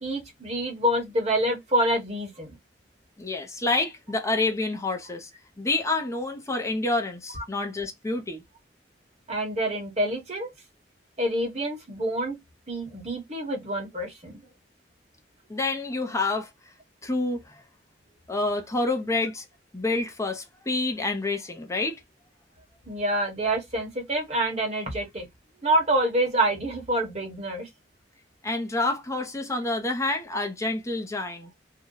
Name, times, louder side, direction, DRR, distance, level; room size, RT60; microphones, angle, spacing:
voice 1, 0.0-2.5 7.3-7.4 9.3-10.5 11.2-12.4 12.7-14.4 22.9-25.3 25.6-27.7, right 1 dB, 40° right, 1.2 m, -27 dB
voice 2, 3.2-5.3 5.6-8.4 15.5-16.5 17.0-17.6 18.3-19.4 19.7-22.0 28.4-31.5, left 2 dB, 15° left, 0.7 m, -28 dB
2.7 x 2.3 x 3.8 m
head